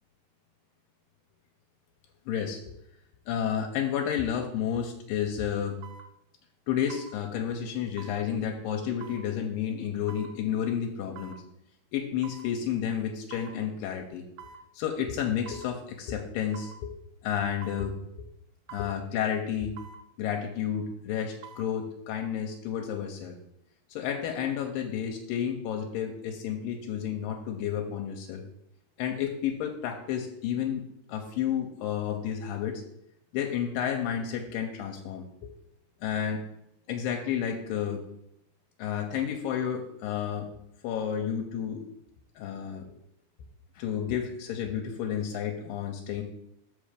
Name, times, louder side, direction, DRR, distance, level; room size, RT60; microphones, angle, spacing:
voice 1, 2.3-2.6 3.3-5.8 6.7-11.3 11.9-14.2 14.7-16.9 17.2-17.9 18.7-19.8 20.2-23.4 23.9-28.4 29.0-30.8 31.1-32.8 33.3-35.3 36.0-36.4 36.9-38.0 38.8-40.5 40.8-41.8 42.4-42.8 43.8-46.2, left 9 dB, 80° left, 3 dB, 2.3 m, -31 dB
sound 1, 4.7-4.8 5.8-6.1 6.9-7.1 8.0-8.2 9.0-9.3 10.1-10.3 11.2-11.4 12.2-12.5 13.3-13.6 14.4-14.6 15.5-15.7 16.5-16.8 17.6-17.9 18.7-19.0 19.8-20.0 21.2-21.7 22.1-22.2, right 6 dB, 80° right, 1.6 m, -46 dB
6.3 x 5.3 x 4.9 m, 0.77 s
omnidirectional pair, 4.1 m